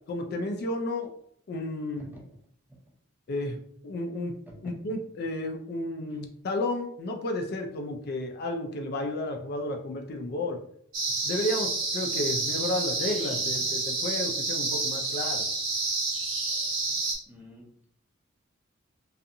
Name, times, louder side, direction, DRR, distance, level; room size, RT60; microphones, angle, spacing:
voice 1, 0.1-1.1 1.5-2.1 3.3-4.3 4.6-10.6 11.2-15.4, left 1 dB, 50° left, 3 dB, 0.3 m, -32 dB
sound 1, 10.9-17.1, right 3 dB, 85° right, 0.9 m, -29 dB
voice 2, 17.3-17.9, equal, 10° right, -1 dB, 0.5 m, -48 dB
2.6 x 2.4 x 2.6 m, 0.65 s
head